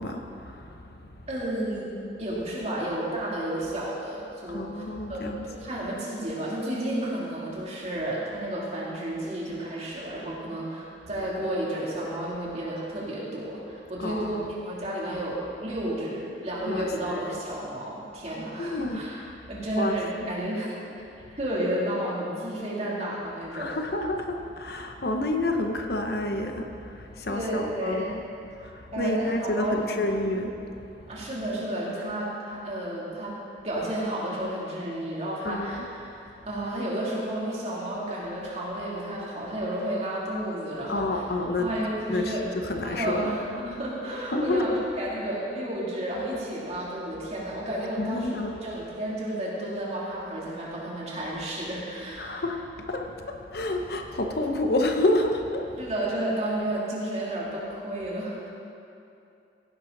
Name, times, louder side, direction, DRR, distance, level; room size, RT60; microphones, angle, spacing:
voice 1, 0.0-1.4 4.5-5.5 14.0-14.5 16.6-17.4 18.6-19.0 19.6-19.9 23.5-28.3 28.6-31.3 35.4-35.9 40.9-41.8 42.1-43.3 44.3-44.8 48.0-48.5 52.2-55.9, left 1 dB, 60° left, 4 dB, 0.9 m, -29 dB
voice 2, 1.3-1.9 2.2-4.8 5.1-19.2 19.5-20.7 21.3-23.8 27.3-28.1 28.9-30.2 31.1-33.4 33.6-35.8 36.0-41.2 41.6-42.4 42.8-44.7 45.0-52.4 55.8-58.5, right 1 dB, 40° right, -6 dB, 2.9 m, -31 dB
16.0 x 11.0 x 4.0 m, 2.6 s
head